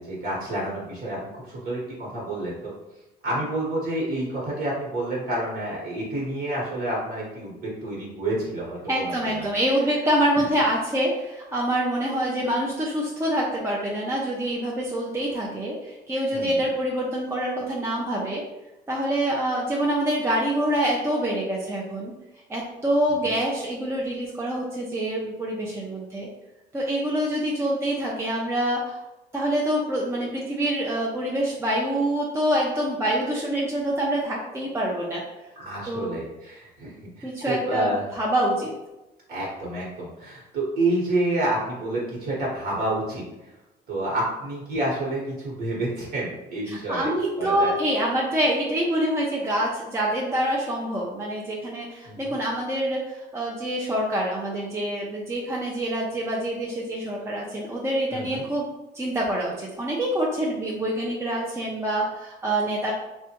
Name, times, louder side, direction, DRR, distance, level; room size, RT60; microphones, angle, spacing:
voice 1, 0.0-2.7 3.2-9.5 16.3-16.6 35.6-38.0 39.3-43.5 43.9-47.1 47.4-47.7 52.1-52.3 58.1-58.4, right 1 dB, 65° right, -4 dB, 1.1 m, -29 dB
voice 2, 8.9-18.4 18.9-22.1 22.5-26.3 26.7-29.0 29.3-35.2 35.9-36.2 37.2-38.7 46.7-58.7 58.9-62.9, right 1 dB, 15° right, -3 dB, 0.5 m, -26 dB
3.4 x 2.1 x 2.9 m, 1.0 s
cardioid pair, 110°, 17 cm